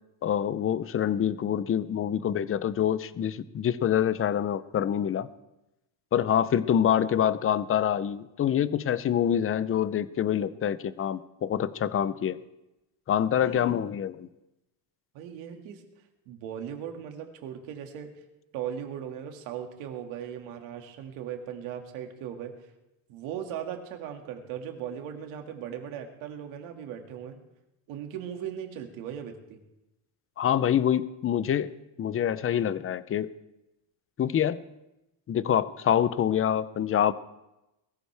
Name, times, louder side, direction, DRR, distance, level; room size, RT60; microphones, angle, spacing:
voice 1, 0.2-5.3 6.1-12.4 13.1-14.3 30.4-31.7 32.0-33.3 34.2-34.6 35.3-37.1, left 9 dB, 30° left, 16 dB, 0.6 m, -26 dB
voice 2, 13.4-13.9 15.1-15.8 16.3-18.1 18.5-22.5 23.1-27.4 27.9-29.6, right 9 dB, 85° right, 4 dB, 2.3 m, -38 dB
21.0 x 15.0 x 3.4 m, 0.93 s
cardioid pair, 120°, 46 cm